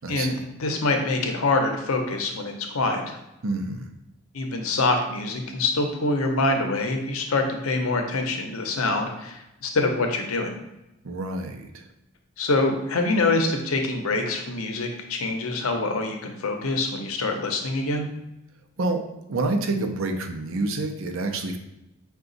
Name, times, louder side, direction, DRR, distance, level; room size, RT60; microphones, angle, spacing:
voice 1, 0.0-0.4 3.4-3.9 11.0-11.9 18.8-19.0 19.3-21.6, right 2 dB, 70° right, 5 dB, 0.5 m, -28 dB
voice 2, 0.6-3.2 4.3-10.5 12.4-18.1, left 2 dB, 80° left, 4 dB, 0.7 m, -25 dB
5.7 x 2.3 x 3.9 m, 0.90 s
head